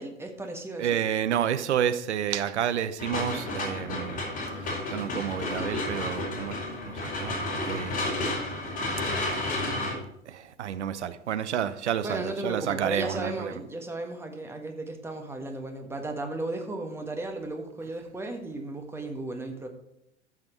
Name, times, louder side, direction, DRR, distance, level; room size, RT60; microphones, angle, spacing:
voice 1, 0.0-1.0 12.0-19.7, right 2 dB, 5° right, 4 dB, 1.5 m, -35 dB
voice 2, 0.8-4.2 4.9-6.5 6.8-7.4 7.6-8.3 10.3-13.5, right 9 dB, 70° right, 12 dB, 0.9 m, -30 dB
sound 1, 3.0-9.9, left 2 dB, 20° left, 4.6 m, -31 dB
13.5 x 6.1 x 4.5 m, 0.79 s
figure-of-eight pair, 100°, 36 cm